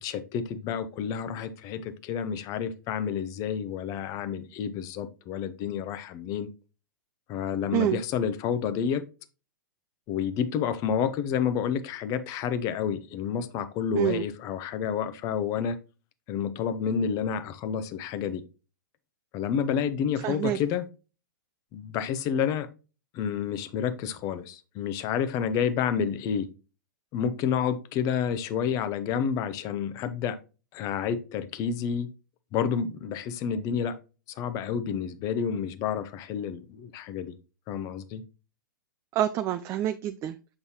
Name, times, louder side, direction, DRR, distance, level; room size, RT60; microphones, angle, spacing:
voice 1, 0.0-6.5 7.3-9.0 10.1-15.8 16.3-18.4 19.3-20.8 21.7-22.7 23.1-26.5 27.1-30.4 30.7-32.1 32.5-34.0 34.4-37.3 37.7-38.2, left 7 dB, 30° left, 0.8 m, -29 dB
voice 2, 20.2-20.6 39.1-40.5, right 12 dB, 25° right, 0.4 m, -27 dB
6.8 x 5.3 x 2.9 m
figure-of-eight pair, 110°, 11 cm